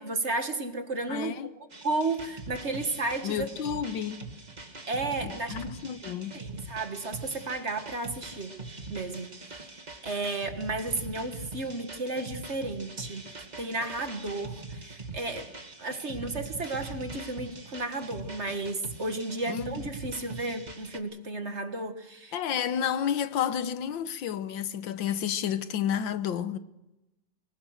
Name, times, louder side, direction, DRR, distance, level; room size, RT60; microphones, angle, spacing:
voice 1, 0.0-1.6 1.8-3.5 4.9-5.6 6.3-8.6 8.9-9.3 9.6-9.7 10.0-13.3 13.6-15.5 15.8-22.4, right 2 dB, 40° right, 1.8 m, -33 dB
voice 2, 1.1-1.5 3.2-4.3 5.2-6.3 19.5-19.8 22.3-26.6, left 9 dB, 85° left, 1.8 m, -31 dB
sound 1, 1.7-21.0, right 3 dB, 25° right, 2.0 m, -43 dB
24.5 x 22.0 x 6.5 m
omnidirectional pair, 2.0 m